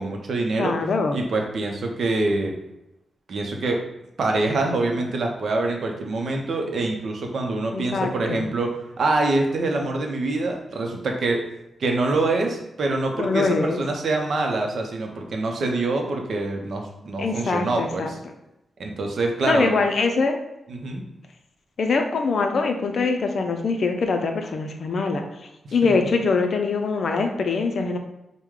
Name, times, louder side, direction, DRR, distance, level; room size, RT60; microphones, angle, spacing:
voice 1, 0.0-0.7 1.1-2.5 3.3-3.8 4.2-11.4 11.8-18.2 18.8-19.7 20.7-21.0 25.6-25.9, right 2 dB, 60° right, 2 dB, 0.6 m, -25 dB
voice 2, 0.6-1.2 7.7-8.4 13.2-13.8 17.2-18.1 19.4-20.4 21.8-25.2 25.7-28.0, left 4 dB, 55° left, 5 dB, 0.5 m, -23 dB
4.7 x 2.1 x 3.6 m, 0.87 s
wide cardioid pair, 155°, 0 cm